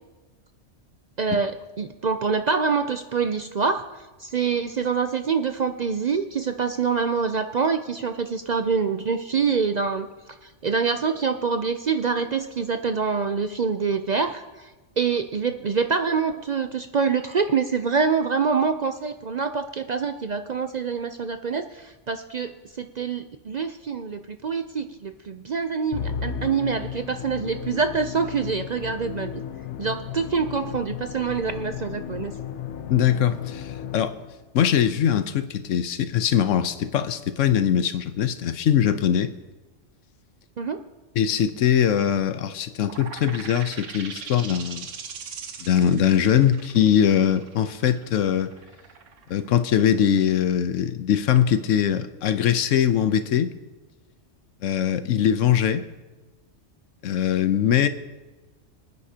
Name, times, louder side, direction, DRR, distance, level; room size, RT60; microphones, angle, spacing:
voice 1, 1.2-3.8 4.2-10.1 10.4-14.7 15.0-22.5 22.8-29.4 29.8-32.3 40.6-40.8, right 5 dB, 50° right, 8 dB, 0.5 m, -25 dB
Musical instrument, 25.9-34.4, left 8 dB, 70° left, 0.9 m, -34 dB
voice 2, 32.9-34.1 34.5-39.3 41.2-44.9 45.6-48.5 49.3-53.5 54.6-55.9 57.0-57.9, left 9 dB, 90° left, 11 dB, 1.1 m, -21 dB
sound 1, 42.8-50.1, right 6 dB, 80° right, 1.3 m, -40 dB
25.5 x 9.5 x 2.8 m, 1.2 s
omnidirectional pair, 1.3 m